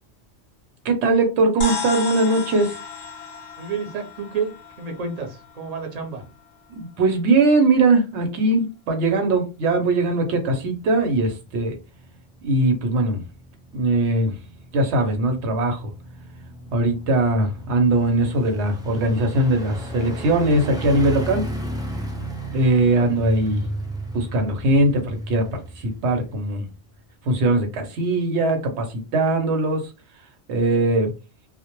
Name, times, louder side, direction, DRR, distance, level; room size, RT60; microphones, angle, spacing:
voice 1, 0.8-2.7 6.7-11.7 12.4-13.2 13.7-14.4 14.7-15.9 16.7-21.4 22.5-23.6 24.1-26.7 27.3-29.8 30.5-31.1, right 2 dB, 85° right, 0.9 m, -20 dB
sound 1, 1.6-6.2, left 4 dB, 50° left, 0.5 m, -34 dB
voice 2, 3.6-6.3 22.9-23.1, right 5 dB, 45° right, 0.7 m, -30 dB
sound 2, 10.7-27.0 27.3-27.4, equal, 5° right, 0.3 m, -34 dB
2.1 x 2.0 x 2.9 m
omnidirectional pair, 1.1 m